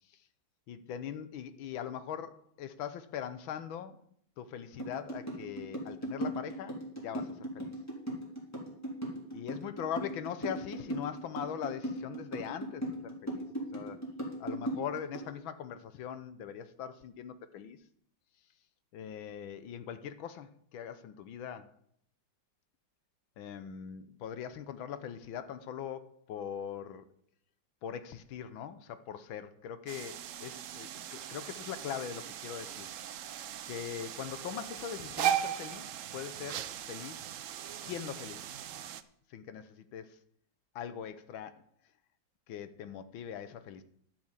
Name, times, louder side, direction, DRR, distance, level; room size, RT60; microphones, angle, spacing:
voice 1, 0.7-4.0 4.4-7.7 9.3-13.5 13.7-14.0 14.4-17.8 18.9-21.7 23.4-27.1 27.8-32.9 33.7-37.3 37.7-38.5 39.3-40.2 40.7-41.6 42.5-43.8, left 9 dB, 85° left, 1.7 m, -41 dB
sound 1, 4.8-15.3, right 1 dB, 10° left, 3.3 m, -37 dB
sound 2, 29.9-39.0, right 10 dB, 75° right, 0.7 m, -38 dB
12.0 x 7.7 x 7.3 m
omnidirectional pair, 2.1 m